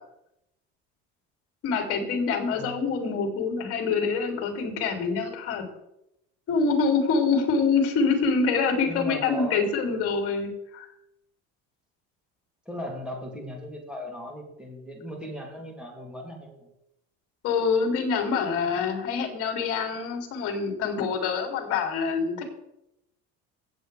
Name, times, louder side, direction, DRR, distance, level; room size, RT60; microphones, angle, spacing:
voice 1, 1.6-5.6 6.5-10.9 17.4-22.4, left 5 dB, 50° left, 2 dB, 3.1 m, -25 dB
voice 2, 8.9-9.7 12.6-16.7, equal, 5° right, -1 dB, 3.0 m, -37 dB
16.0 x 7.9 x 3.5 m, 0.84 s
cardioid pair, 135°, 29 cm